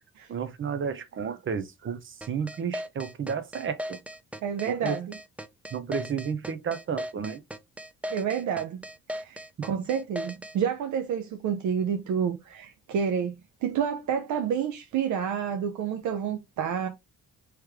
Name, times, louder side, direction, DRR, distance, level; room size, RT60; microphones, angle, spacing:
voice 1, 0.3-4.0 4.6-5.0 5.7-7.4, right 6 dB, 40° right, 0.7 m, -32 dB
sound 1, 2.2-10.6, equal, 5° right, 0.4 m, -37 dB
voice 2, 4.4-5.1 8.1-8.8 9.1-16.9, right 7 dB, 75° right, 0.7 m, -29 dB
3.2 x 3.2 x 3.5 m
cardioid pair, 90°, 30 cm